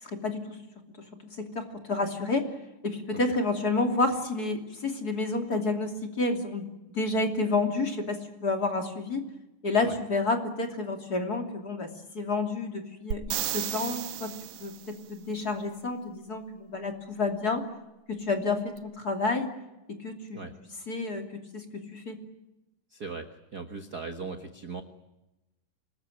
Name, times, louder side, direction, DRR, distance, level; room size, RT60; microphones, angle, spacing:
voice 1, 0.0-0.6 1.3-2.5 2.8-9.2 9.6-14.3 14.6-17.6 18.1-19.5 19.9-20.4 20.9-21.3 21.5-22.2, left 3 dB, 30° left, 4 dB, 3.1 m, -30 dB
sound 1, 13.1-14.9 18.8-18.9, right 12 dB, 90° right, 2.8 m, -33 dB
voice 2, 22.9-24.8, right 4 dB, 45° right, 7 dB, 1.3 m, -38 dB
27.0 x 20.5 x 9.2 m, 0.97 s
omnidirectional pair, 3.7 m